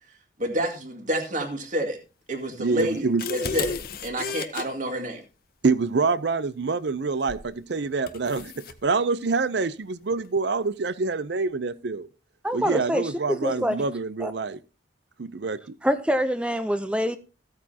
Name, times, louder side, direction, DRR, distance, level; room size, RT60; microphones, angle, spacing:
voice 1, 0.4-2.0 2.3-5.2, right 1 dB, 40° right, 2.1 m, -28 dB
voice 2, 2.6-3.2 5.6-12.1 12.5-14.6 15.2-15.8, right 4 dB, 65° right, 0.6 m, -26 dB
sound 1, 2.8-4.6 7.3-7.5 8.1-8.8, left 5 dB, 50° left, 0.7 m, -33 dB
voice 3, 12.4-13.7 14.2-14.3 15.8-17.2, equal, 5° right, 0.6 m, -25 dB
15.0 x 8.8 x 2.8 m
head